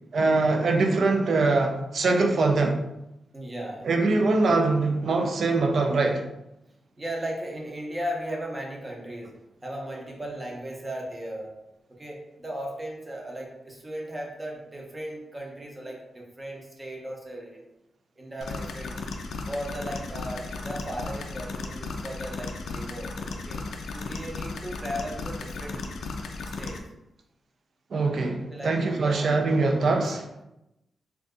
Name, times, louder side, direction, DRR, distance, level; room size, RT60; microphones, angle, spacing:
voice 1, 0.1-2.8 3.8-6.2 27.9-30.3, right 3 dB, 60° right, 3 dB, 0.4 m, -23 dB
voice 2, 3.3-3.9 7.0-11.5 12.0-17.6 18.2-19.0 19.5-23.6 23.9-25.9 26.4-26.9 28.5-29.9, right 1 dB, 20° right, -1 dB, 0.7 m, -36 dB
sound 1, 18.4-26.8, left 3 dB, 85° left, 0.3 m, -35 dB
2.6 x 2.3 x 3.5 m, 0.90 s
wide cardioid pair, 135°, 0 cm